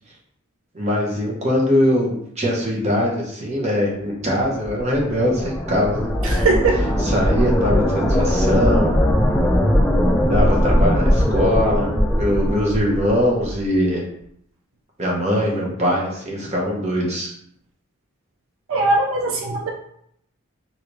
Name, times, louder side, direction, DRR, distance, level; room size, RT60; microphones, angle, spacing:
voice 1, 0.7-6.1 7.0-8.9 10.3-14.0 15.0-17.3, equal, 30° right, -3 dB, 0.8 m, -21 dB
sound 1, 4.5-13.6, equal, 5° left, 0.4 m, -20 dB
voice 2, 6.2-6.9 11.4-11.5 18.7-19.7, right 3 dB, 70° right, 1 dB, 0.4 m, -20 dB
3.2 x 2.7 x 2.9 m, 0.70 s
head